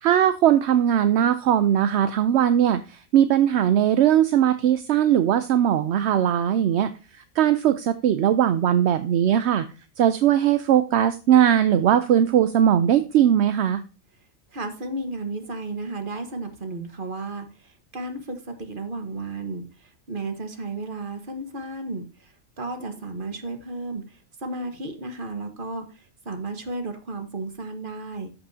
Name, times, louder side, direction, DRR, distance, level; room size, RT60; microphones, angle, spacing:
voice 1, 0.0-9.7 10.0-13.8, right 10 dB, 65° right, 11 dB, 0.7 m, -20 dB
voice 2, 14.5-28.3, right 2 dB, 40° right, 6 dB, 1.5 m, -33 dB
13.0 x 5.5 x 2.7 m, 0.32 s
omnidirectional pair, 1.4 m